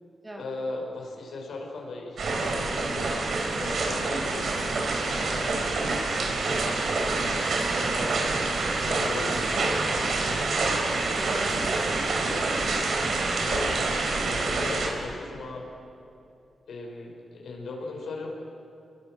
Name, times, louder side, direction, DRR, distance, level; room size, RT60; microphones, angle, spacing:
voice 1, 0.4-3.2 3.5-4.5 5.1-5.7 6.4-7.3 7.7-8.6 8.8-10.4 13.2-13.8 14.2-15.7 16.7-18.3, left 3 dB, 80° left, 0 dB, 5.7 m, -38 dB
sound 1, 2.2-14.9, right 3 dB, 65° right, 3.8 m, -27 dB
voice 2, 5.1-5.6 11.1-12.9, right 1 dB, 15° right, 0 dB, 3.1 m, -40 dB
28.5 x 22.0 x 6.4 m, 2.7 s
wide cardioid pair, 145°, 0 cm